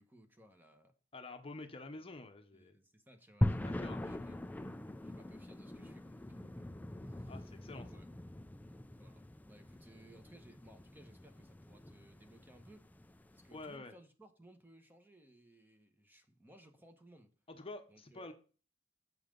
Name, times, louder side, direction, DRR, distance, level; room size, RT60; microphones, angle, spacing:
voice 1, 0.0-0.9 2.5-6.7 7.0-7.5 7.7-8.1 8.9-12.9 13.3-17.3 17.9-18.3, right 1 dB, 10° right, 1.1 m, -61 dB
voice 2, 1.1-2.8 3.6-4.1 7.3-7.8 13.5-13.9 17.5-18.3, left 2 dB, 30° left, 0.9 m, -48 dB
sound 1, 3.4-13.7, left 1 dB, 10° left, 0.3 m, -41 dB
7.7 x 5.6 x 5.3 m
head